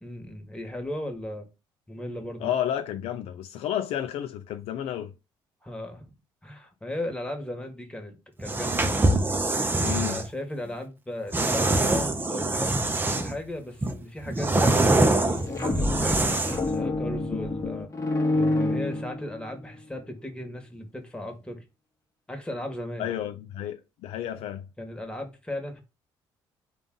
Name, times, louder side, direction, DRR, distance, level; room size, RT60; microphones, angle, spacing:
voice 1, 0.0-1.5 1.9-2.5 5.6-6.1 6.4-9.2 9.8-17.9 18.3-21.6 22.3-23.1 24.8-25.8, left 1 dB, 10° left, 1.3 m, -36 dB
voice 2, 2.4-5.1 9.8-10.2 23.0-24.6, left 10 dB, 70° left, 0.4 m, -31 dB
sound 1, 8.4-10.3 11.3-13.4 13.8-16.7, right 2 dB, 20° right, 0.6 m, -24 dB
sound 2, 15.3-19.6, left 2 dB, 30° left, 1.0 m, -28 dB
3.6 x 2.5 x 3.7 m
hypercardioid pair, 60°, 11 cm